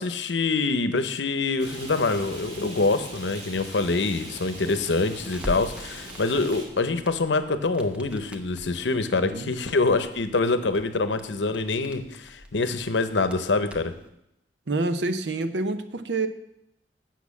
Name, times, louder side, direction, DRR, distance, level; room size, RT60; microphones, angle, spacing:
voice 1, 0.0-13.9, left 3 dB, 80° left, 10 dB, 0.8 m, -25 dB
Rain, 1.6-6.7, right 1 dB, 40° right, 2.5 m, -40 dB
Crackle, 5.1-14.1, equal, 5° right, 0.8 m, -44 dB
voice 2, 14.7-16.3, right 2 dB, 75° right, 11 dB, 0.7 m, -27 dB
8.4 x 5.9 x 7.1 m, 0.82 s
head